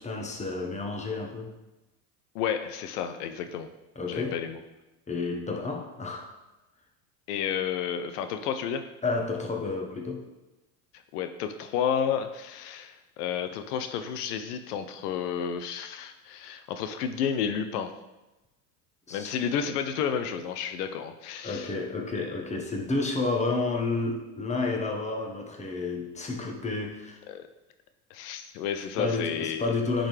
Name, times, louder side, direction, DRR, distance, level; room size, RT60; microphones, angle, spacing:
voice 1, 0.0-1.5 3.9-4.4 5.1-6.3 9.0-10.2 19.1-19.3 21.4-27.2 29.0-30.1, left 3 dB, 15° left, 1 dB, 1.1 m, -30 dB
voice 2, 2.3-3.7 4.1-4.6 7.3-8.8 11.1-17.9 19.1-21.7 22.2-22.3 27.3-27.5 28.1-29.6, left 8 dB, 75° left, 8 dB, 0.7 m, -31 dB
10.0 x 3.8 x 3.2 m, 1.0 s
hypercardioid pair, 85°, 47 cm